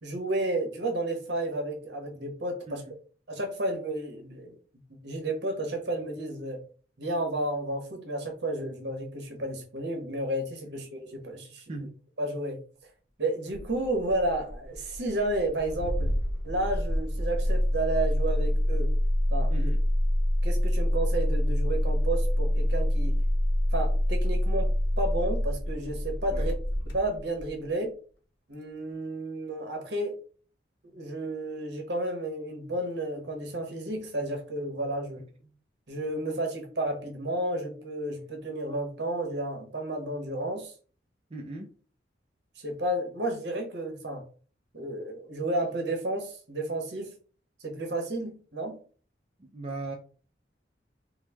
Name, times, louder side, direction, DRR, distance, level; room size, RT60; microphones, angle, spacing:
voice 1, 0.0-2.8 3.3-4.5 5.0-6.6 7.0-11.6 12.2-12.6 13.2-16.1 16.4-18.9 19.3-19.7 20.4-23.2 23.7-24.7 25.0-26.5 26.9-27.9 28.5-30.1 30.9-35.2 35.9-40.7 42.6-44.2 44.7-47.1 47.6-48.8, right 1 dB, 70° right, 3 dB, 1.0 m, -32 dB
Engine starting, 13.5-27.6, equal, 80° left, 0.8 m, -27 dB
voice 2, 19.5-19.8 26.3-26.5 35.4-35.6 41.3-41.7 49.4-49.9, right 2 dB, 30° right, 1 dB, 0.4 m, -38 dB
4.7 x 2.0 x 3.3 m, 0.41 s
head